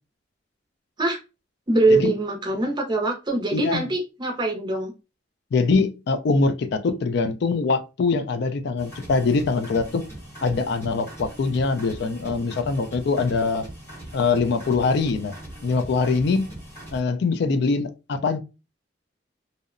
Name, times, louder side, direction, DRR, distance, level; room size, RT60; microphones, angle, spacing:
voice 1, 1.7-4.9, right 2 dB, 25° right, 0.5 m, -23 dB
voice 2, 3.5-3.8 5.5-10.1 10.4-13.7 14.1-15.4 15.6-16.5 16.9-18.4, left 4 dB, 60° left, 0.4 m, -23 dB
sound 1, 8.8-17.0, right 1 dB, 15° left, 0.9 m, -41 dB
2.7 x 2.0 x 2.4 m
head